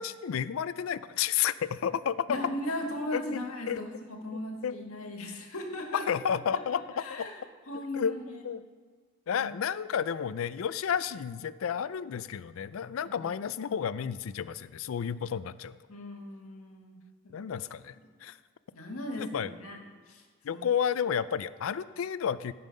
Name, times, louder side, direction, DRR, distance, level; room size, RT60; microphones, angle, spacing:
voice 1, 0.0-2.3 3.1-3.4 3.7-3.8 4.6-4.7 5.9-7.3 7.9-8.1 8.4-8.6 9.3-15.8 17.3-18.0 18.2-18.4 19.2-19.5 20.4-22.5, left 8 dB, 70° left, 16 dB, 0.4 m, -31 dB
voice 2, 2.3-6.0 6.5-7.4 7.7-8.4 9.3-9.5 13.0-13.3 13.7-13.8 15.9-17.0 17.2-17.4 18.7-19.8 20.1-20.2 20.5-20.6, left 1 dB, 90° left, 2 dB, 1.6 m, -38 dB
15.0 x 5.5 x 5.2 m, 1.5 s
head